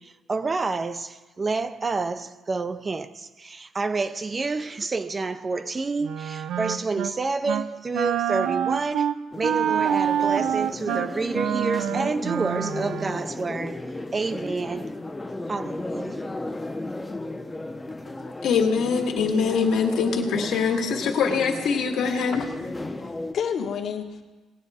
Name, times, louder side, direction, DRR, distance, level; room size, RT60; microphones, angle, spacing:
voice 1, 0.0-13.8 14.1-14.9 15.5-16.2, right 3 dB, 25° right, 0.5 m, -29 dB
Wind instrument woodwind instrument, 6.0-7.2 7.5-7.7 7.9-13.2, right 9 dB, 80° right, 0.6 m, -26 dB
sound 1, 9.3-23.3, left 2 dB, 10° left, 0.7 m, -35 dB
voice 2, 18.3-22.4, left 5 dB, 70° left, 1.6 m, -23 dB
voice 3, 22.3-24.2, left 7 dB, 55° left, 1.3 m, -32 dB
18.5 x 9.1 x 4.2 m
cardioid pair, 135°, 0 cm